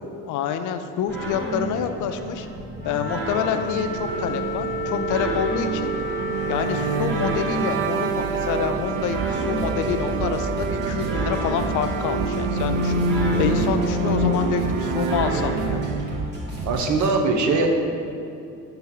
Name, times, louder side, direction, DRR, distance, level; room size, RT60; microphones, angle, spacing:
voice 1, 0.3-2.5 2.8-5.9 6.5-15.8, left 8 dB, 70° left, 8 dB, 0.5 m, -27 dB
sound 1, 1.1-17.1, right 1 dB, 35° right, 1.5 m, -31 dB
Wind instrument woodwind instrument, 2.8-7.1, equal, 30° left, 0.7 m, -31 dB
sound 2, 3.4-16.3, right 3 dB, 80° right, 0.5 m, -27 dB
voice 2, 13.2-13.6 14.0-14.6 16.6-17.7, right 4 dB, 65° right, 3 dB, 0.9 m, -24 dB
5.8 x 3.7 x 5.7 m, 2.7 s
cardioid pair, 125°, 32 cm